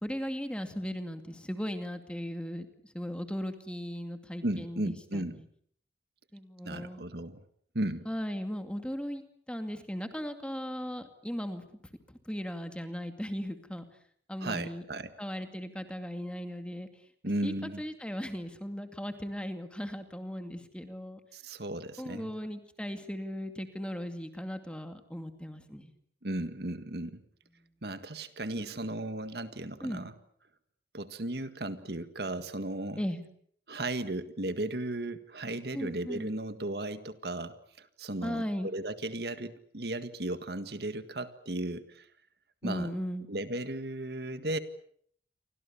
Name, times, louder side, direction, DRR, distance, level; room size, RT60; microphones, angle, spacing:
voice 1, 0.0-5.4 6.3-7.0 8.1-11.7 12.1-13.8 14.3-14.8 15.2-16.9 17.4-21.2 22.0-25.9 29.8-30.1 33.0-33.2 35.7-36.3 38.2-38.7 42.6-43.3, equal, 5° left, 7 dB, 2.4 m, -37 dB
voice 2, 4.4-5.4 6.6-7.4 7.7-8.1 14.4-15.1 17.2-17.8 21.3-22.3 26.2-27.2 27.8-30.1 30.9-33.0 33.7-42.1 42.6-42.9 43.3-44.6, right 1 dB, 65° right, 11 dB, 1.8 m, -35 dB
29.0 x 24.5 x 7.0 m, 0.63 s
head